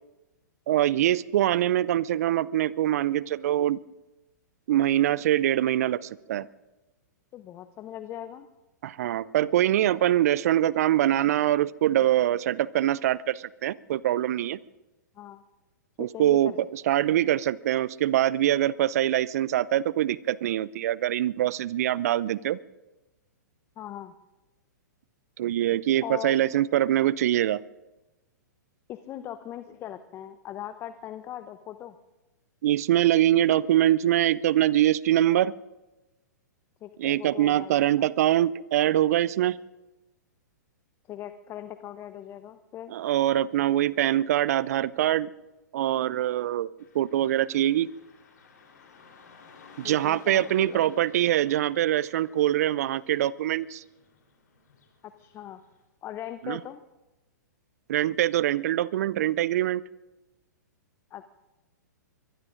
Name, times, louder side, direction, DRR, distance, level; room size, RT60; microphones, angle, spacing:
voice 1, 0.7-3.8 4.7-6.5 8.8-14.6 16.0-22.6 25.4-27.6 32.6-35.5 37.0-39.6 42.9-45.3 45.7-46.7 46.9-47.9 49.8-53.8 56.4-56.6 57.9-59.8, right 12 dB, 55° right, 22 dB, 0.4 m, -24 dB
voice 2, 7.3-8.5 15.1-15.4 16.0-16.6 23.8-24.1 26.0-26.4 28.9-31.9 36.8-38.1 41.1-42.9 49.8-50.8 55.2-55.6 56.0-56.8 61.1-61.3, left 11 dB, 25° left, 12 dB, 0.6 m, -39 dB
Car passing by / Traffic noise roadway noise, 46.8-55.8, left 4 dB, 70° left, 3.7 m, -55 dB
23.5 x 22.5 x 2.6 m, 1.1 s
hypercardioid pair, 115°, 10 cm